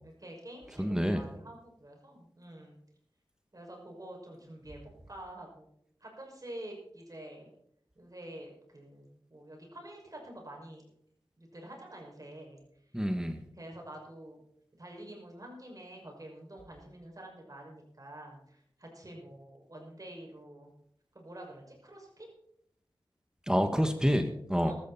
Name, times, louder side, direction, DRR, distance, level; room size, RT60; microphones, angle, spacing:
voice 1, 0.0-2.8 3.5-4.8 5.1-5.7 6.0-7.5 7.9-10.8 11.4-12.6 13.5-14.4 14.8-20.7 21.1-22.3 24.6-24.7, right 1 dB, 40° right, 1 dB, 6.2 m, -47 dB
voice 2, 0.8-1.2 12.9-13.4 23.5-24.7, equal, 10° right, 7 dB, 1.6 m, -28 dB
14.5 x 14.0 x 4.3 m, 0.71 s
cardioid pair, 50°, 9 cm